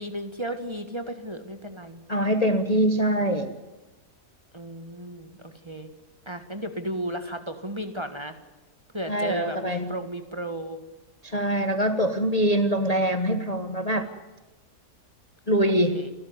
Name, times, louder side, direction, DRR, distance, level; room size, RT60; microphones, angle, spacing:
voice 1, 0.0-2.0 4.5-5.9 6.2-8.4 8.9-10.8 15.7-16.1, right 1 dB, 15° right, 7 dB, 1.5 m, -34 dB
voice 2, 2.1-3.5 9.1-9.9 11.2-14.1 15.5-16.0, equal, 25° left, 8 dB, 1.2 m, -23 dB
29.5 x 13.5 x 9.6 m, 1.1 s
omnidirectional pair, 1.7 m